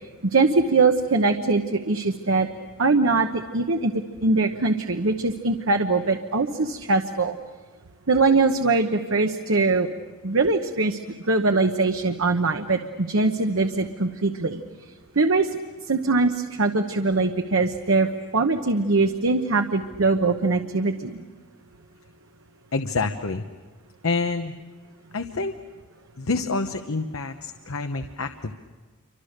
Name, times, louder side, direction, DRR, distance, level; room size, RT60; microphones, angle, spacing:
voice 1, 0.2-2.5 2.8-3.9 4.2-7.4 8.1-9.9 10.2-11.0 11.3-14.6 15.2-15.5 15.9-21.2, right 3 dB, 70° right, 6 dB, 1.1 m, -22 dB
voice 2, 22.7-23.4 24.0-24.5 25.1-25.5 26.2-28.5, left 3 dB, 80° left, 7 dB, 1.0 m, -27 dB
29.0 x 25.0 x 6.7 m, 1.4 s
head